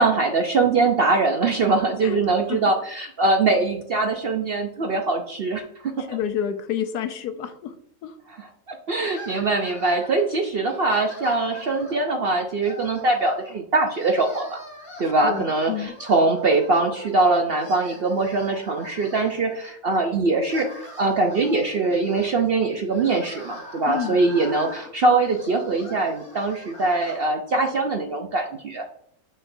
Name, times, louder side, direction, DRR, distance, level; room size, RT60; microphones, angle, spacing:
voice 1, 0.0-5.6 6.1-6.2 8.4-14.6 15.0-20.7 21.0-29.0, right 3 dB, 55° right, 4 dB, 0.6 m, -22 dB
voice 2, 6.0-7.8 8.0-8.2 15.2-15.9 23.9-24.2, left 9 dB, 85° left, 9 dB, 1.2 m, -29 dB
sound 1, 9.0-10.3 10.6-12.1 12.6-13.5 13.9-17.1 17.4-19.7 20.2-27.2, left 1 dB, 20° left, 2.9 m, -42 dB
6.5 x 6.1 x 2.6 m, 0.67 s
omnidirectional pair, 1.7 m